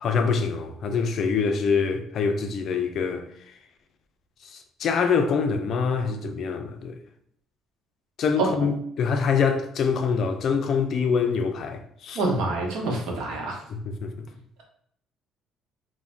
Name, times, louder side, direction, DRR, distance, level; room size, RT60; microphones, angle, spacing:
voice 1, 0.0-3.3 4.5-7.0 8.2-12.2 13.7-14.1, left 5 dB, 55° left, 0.4 m, -25 dB
voice 2, 12.1-13.6, right 3 dB, 80° right, 0.8 m, -26 dB
2.4 x 2.1 x 3.2 m
cardioid pair, 90°, 0 cm